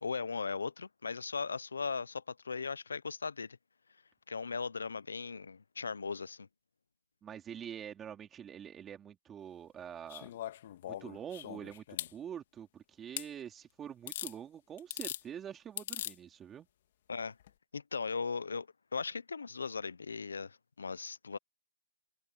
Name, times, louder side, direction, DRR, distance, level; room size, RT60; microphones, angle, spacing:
voice 1, 0.0-3.6 4.3-6.5 17.1-17.4 17.7-21.4, left 5 dB, 80° left, 0.8 m, -38 dB
voice 2, 7.2-10.3 10.9-11.8 12.1-16.7, right 9 dB, 15° right, 2.9 m, -45 dB
sound 1, 10.1-12.1 13.2-13.3 14.1-14.3 14.8-15.2 15.8-16.1 17.4-17.5, left 12 dB, 45° left, 2.1 m, -40 dB
hypercardioid pair, 150°, 0 cm